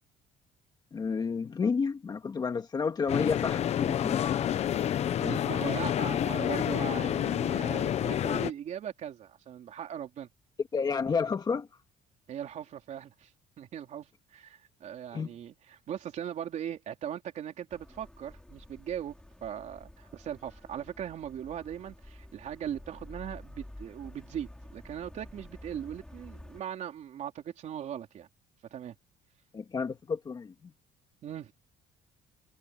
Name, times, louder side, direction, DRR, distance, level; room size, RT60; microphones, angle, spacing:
voice 1, 0.9-4.2 10.7-11.7 15.1-15.3 29.5-30.7, left 5 dB, 25° left, 1.8 m, -30 dB
sound 1, 3.1-8.5, left 10 dB, 40° left, 0.8 m, -29 dB
voice 2, 5.2-10.3 12.3-13.3 13.6-19.2 19.4-28.3 28.7-29.0 31.2-31.5, right 9 dB, 45° right, 3.9 m, -39 dB
sound 2, 17.7-26.6, left 1 dB, 5° left, 5.2 m, -50 dB
cardioid pair, 180°, 17 cm